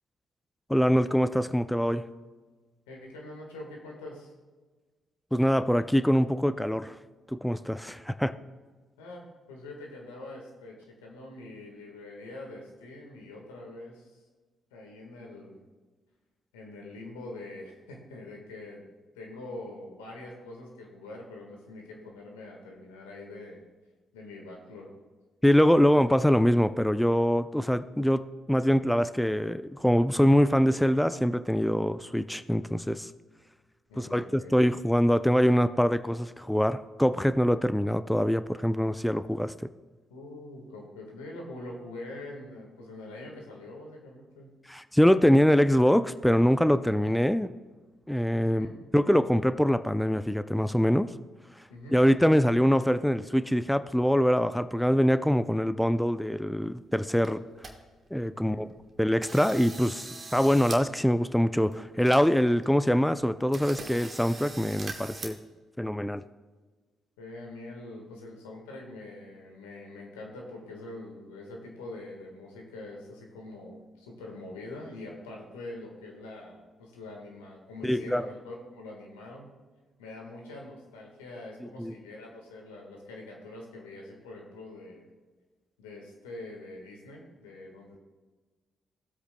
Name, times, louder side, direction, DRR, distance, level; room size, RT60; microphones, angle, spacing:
voice 1, 0.7-2.0 5.3-7.0 7.3-8.3 25.4-33.1 34.0-39.5 44.7-47.5 48.1-48.7 48.9-51.1 51.9-57.4 58.1-58.7 59.0-65.4 65.8-66.2 77.8-78.3 81.6-81.9, equal, 5° left, 12 dB, 0.4 m, -24 dB
voice 2, 2.9-4.3 9.0-14.2 14.7-15.6 16.5-18.9 19.1-23.6 24.1-24.9 25.9-26.0 33.9-34.6 40.1-44.5 46.8-47.1 48.4-48.7 51.7-52.0 58.3-58.6 67.2-79.5 80.0-85.1 85.8-88.0, left 2 dB, 85° left, 0 dB, 1.6 m, -44 dB
sound 1, 56.9-57.0 57.2-57.7 58.2-58.3 58.7-58.9 59.2-60.8 61.1-61.2 61.7-61.8 62.0-62.7 63.0-63.1 63.5-65.3, right 3 dB, 45° right, 1.4 m, -42 dB
16.5 x 8.0 x 2.3 m, 1.3 s
hypercardioid pair, 45°, 0 cm